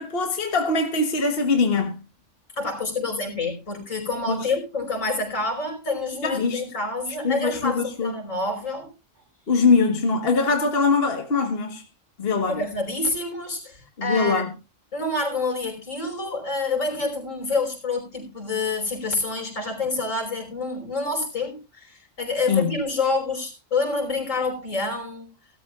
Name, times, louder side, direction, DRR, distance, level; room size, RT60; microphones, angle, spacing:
voice 1, 0.0-2.0 4.3-4.5 6.2-6.7 7.2-8.1 9.5-11.8 12.2-12.6 14.0-14.5 22.5-22.7, left 4 dB, 50° left, 1.6 m, -22 dB
voice 2, 2.5-8.9 12.5-14.4 14.9-25.3, left 3 dB, 85° left, 5.6 m, -27 dB
18.0 x 13.0 x 2.4 m
omnidirectional pair, 1.3 m